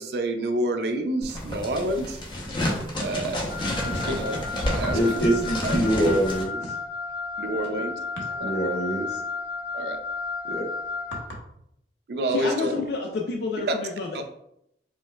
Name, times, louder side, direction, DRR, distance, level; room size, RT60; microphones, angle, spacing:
voice 1, 0.0-2.2 3.0-3.4 3.9-4.4 4.8-5.2 5.6-5.8 7.4-7.9 8.2-8.7 9.7-10.0 12.1-12.7, right 1 dB, 65° right, 7 dB, 0.4 m, -28 dB
sound 1, 1.2-6.4, left 1 dB, 25° left, 0.6 m, -29 dB
Wind instrument woodwind instrument, 3.5-11.3, left 4 dB, 20° right, 0.8 m, -33 dB
voice 2, 4.9-6.7 8.4-9.2 10.4-10.6, right 1 dB, 85° left, -3 dB, 1.1 m, -25 dB
voice 3, 12.3-14.2, left 4 dB, 65° left, 1 dB, 0.4 m, -29 dB
4.5 x 2.2 x 2.2 m, 0.77 s
head